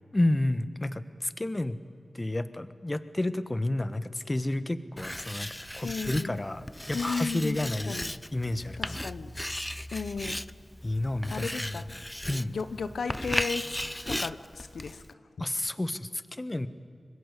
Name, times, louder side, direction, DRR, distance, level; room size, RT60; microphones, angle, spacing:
voice 1, 0.1-1.8 2.1-7.9 8.3-9.0 10.8-11.7 12.3-12.5 15.4-16.7, left 1 dB, 30° left, 12 dB, 1.4 m, -30 dB
Writing, 5.0-15.1, left 1 dB, 15° left, 0.6 m, -36 dB
voice 2, 5.8-6.4 6.9-8.1 8.8-9.3 9.9-10.4 11.3-11.8 12.5-13.8 14.1-15.0, left 5 dB, 85° left, 10 dB, 1.0 m, -35 dB
25.5 x 21.0 x 8.4 m, 2.4 s
cardioid pair, 40°, 0 cm